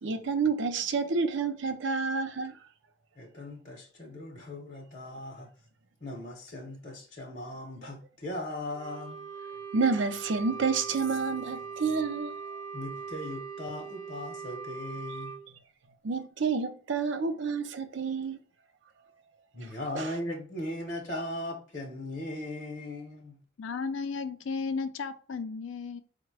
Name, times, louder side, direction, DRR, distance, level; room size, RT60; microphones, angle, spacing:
voice 1, 0.0-2.5 9.7-12.6 16.0-18.4 19.6-19.7 20.0-20.1, right 4 dB, 70° right, 0.5 m, -29 dB
voice 2, 3.2-5.5 6.0-9.2 12.7-15.4 19.5-23.4, left 1 dB, 40° left, 0.8 m, -38 dB
Wind instrument woodwind instrument, 8.7-15.4, right 5 dB, 15° left, 0.4 m, -41 dB
voice 3, 23.6-26.0, left 4 dB, 75° left, 0.4 m, -34 dB
4.8 x 2.2 x 4.6 m
head